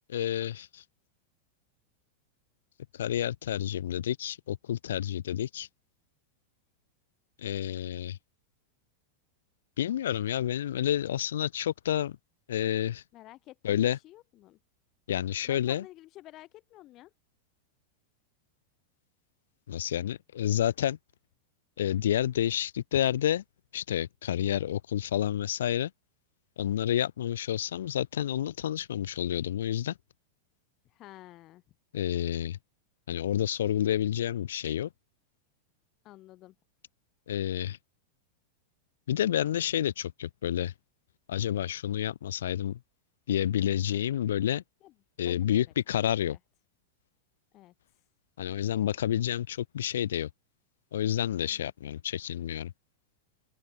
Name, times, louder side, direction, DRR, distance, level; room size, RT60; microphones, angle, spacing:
voice 1, 0.1-0.8 2.9-5.7 7.4-8.2 9.8-12.2 12.5-13.0 13.6-14.0 15.1-15.8 19.7-21.0 21.8-23.4 23.7-25.9 26.6-29.9 31.9-32.6 33.1-34.9 37.3-37.8 39.1-40.7 41.3-42.8 43.3-44.6 45.2-46.4 48.4-50.3 50.9-52.7, left 11 dB, 60° left, 1.2 m, -29 dB
voice 2, 13.1-14.6 15.5-17.1 30.8-31.6 36.0-36.5 44.8-44.9 45.2-45.7 46.3-46.4 47.5-48.0 49.1-49.2 51.4-51.7, left 16 dB, 35° left, 4.9 m, -51 dB
open air
figure-of-eight pair, 90°, 0 cm